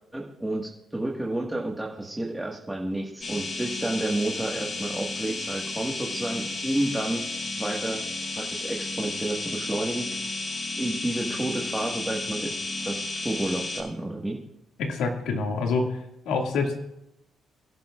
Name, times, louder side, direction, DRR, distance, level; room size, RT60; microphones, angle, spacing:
voice 1, 0.1-7.2 7.6-8.0 8.4-10.2 10.8-12.6 12.9-14.4, right 1 dB, 10° right, -2 dB, 1.7 m, -30 dB
sound 1, 3.2-13.8, left 2 dB, 40° left, 5.9 m, -33 dB
voice 2, 14.8-16.0 16.3-16.7, left 4 dB, 90° left, 1 dB, 2.2 m, -26 dB
26.5 x 11.0 x 2.5 m, 0.84 s
cardioid pair, 90°, 0 cm